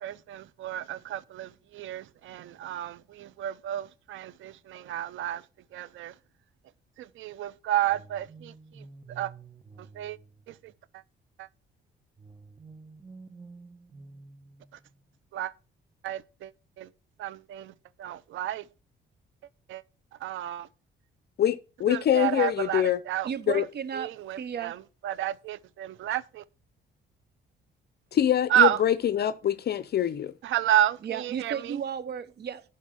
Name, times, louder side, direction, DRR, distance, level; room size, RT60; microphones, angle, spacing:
voice 1, 0.0-5.4 5.7-6.1 7.0-8.5 9.2-9.3 10.0-10.2 11.4-11.5 15.3-15.5 16.0-16.2 17.2-17.7 18.0-18.6 19.7-19.8 20.2-20.7 21.9-23.3 24.0-24.8 25.0-26.4 28.5-28.8 30.4-31.8, right 11 dB, 80° right, 0.6 m, -30 dB
sound 1, 7.9-11.0 12.2-15.1, right 4 dB, 20° right, 1.1 m, -50 dB
voice 2, 21.4-23.0 23.5-23.6 28.1-30.3, left 10 dB, 55° left, 0.6 m, -25 dB
voice 3, 23.2-24.1 24.4-24.7 31.0-32.6, right 8 dB, 55° right, 0.9 m, -34 dB
11.5 x 4.1 x 6.2 m
cardioid pair, 90°, 20 cm